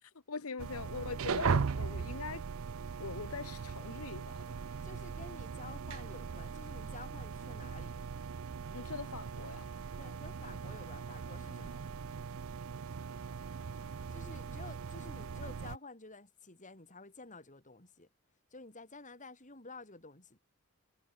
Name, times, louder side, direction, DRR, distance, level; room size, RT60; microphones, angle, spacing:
voice 1, 0.0-2.4 3.0-4.6 8.7-9.7, left 4 dB, 85° left, 1.2 m, -42 dB
sound 1, 0.6-15.8, right 5 dB, 70° right, 0.5 m, -39 dB
voice 2, 4.8-8.0 9.9-11.8 14.1-18.1 18.5-20.4, left 3 dB, 35° left, 6.9 m, -51 dB
head